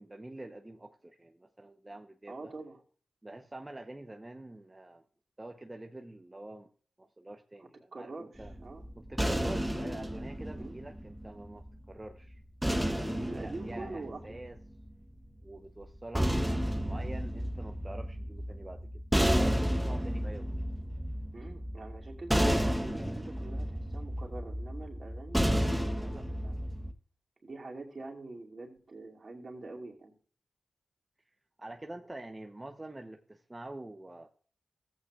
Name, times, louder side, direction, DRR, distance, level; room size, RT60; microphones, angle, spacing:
voice 1, 0.0-2.5 3.2-5.0 5.4-6.7 7.0-8.5 9.0-14.6 15.4-18.8 19.3-20.6 31.6-34.3, right 1 dB, 25° right, 5 dB, 0.8 m, -46 dB
voice 2, 2.3-2.8 7.6-8.8 10.5-10.8 13.2-14.4 21.3-26.6 27.4-30.1, right 3 dB, 55° right, 0 dB, 2.5 m, -45 dB
sound 1, 8.4-11.7 12.6-14.9 15.8-26.9, equal, 5° right, 1.1 m, -32 dB
14.0 x 8.3 x 2.4 m, 0.44 s
cardioid pair, 40°, 0 cm